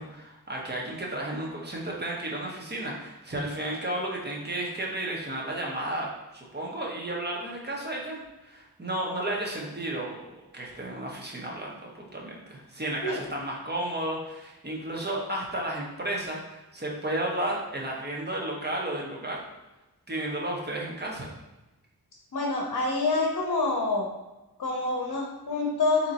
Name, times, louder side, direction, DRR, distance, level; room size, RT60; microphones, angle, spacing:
voice 1, 0.0-10.3 10.5-19.4 20.1-21.3, right 1 dB, 25° right, -3 dB, 1.1 m, -33 dB
voice 2, 22.3-24.1 24.6-26.1, left 3 dB, 55° left, -1 dB, 0.8 m, -27 dB
3.9 x 3.0 x 4.0 m, 1.1 s
cardioid pair, 50°, 38 cm